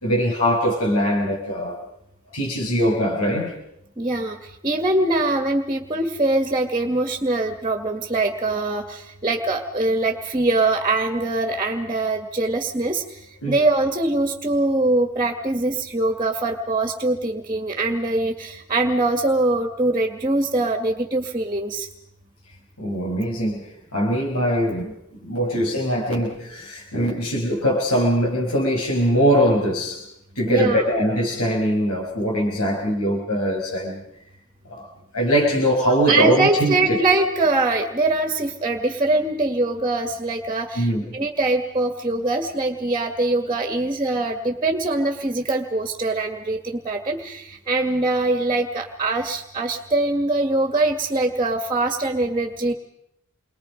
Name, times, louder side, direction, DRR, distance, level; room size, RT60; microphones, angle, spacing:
voice 1, 0.0-1.8 2.3-3.6 13.4-13.6 22.8-23.7 23.9-24.9 25.2-30.0 30.4-34.0 34.7-34.9 35.1-37.0 40.8-41.1, equal, 85° left, -2 dB, 5.7 m, -22 dB
voice 2, 4.0-4.4 4.6-13.0 13.5-21.9 30.5-30.8 36.1-40.9 41.1-52.7, right 2 dB, 20° right, 4 dB, 1.9 m, -23 dB
29.0 x 22.5 x 5.3 m, 0.76 s
head